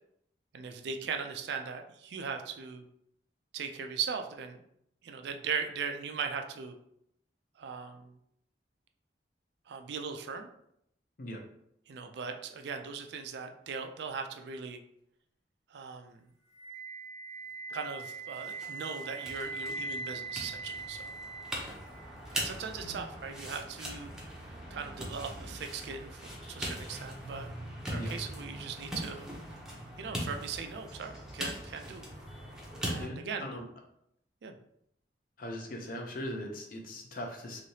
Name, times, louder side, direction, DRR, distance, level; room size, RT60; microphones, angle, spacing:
voice 1, 0.5-2.9 3.5-4.6 5.0-6.8 7.6-8.1 9.7-10.5 11.9-14.8 15.7-16.3 17.7-21.1 22.3-24.3 24.7-27.5 27.9-29.3 30.0-32.0 32.8-33.5 34.4-34.6, right 6 dB, 65° right, 5 dB, 0.4 m, -39 dB
Wind instrument woodwind instrument, 16.5-22.5, right 3 dB, 80° left, 1.2 m, -41 dB
sound 1, 18.1-33.0, equal, 5° right, 0.6 m, -41 dB
voice 2, 33.0-33.7 35.4-37.6, left 1 dB, 50° left, 2 dB, 0.6 m, -40 dB
3.2 x 2.7 x 2.7 m, 0.74 s
head